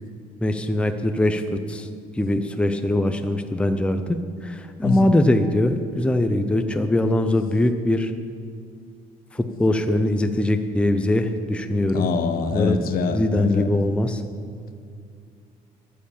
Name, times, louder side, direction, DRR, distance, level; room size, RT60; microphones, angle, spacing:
voice 1, 0.4-1.9 2.1-4.2 4.4-8.1 9.3-12.1 12.5-12.8 13.1-14.2, left 1 dB, 5° left, 7 dB, 0.7 m, -22 dB
voice 2, 4.8-5.1 11.9-13.8, left 5 dB, 60° left, 8 dB, 1.1 m, -24 dB
10.5 x 9.7 x 7.2 m, 2.3 s
cardioid pair, 110°, 17 cm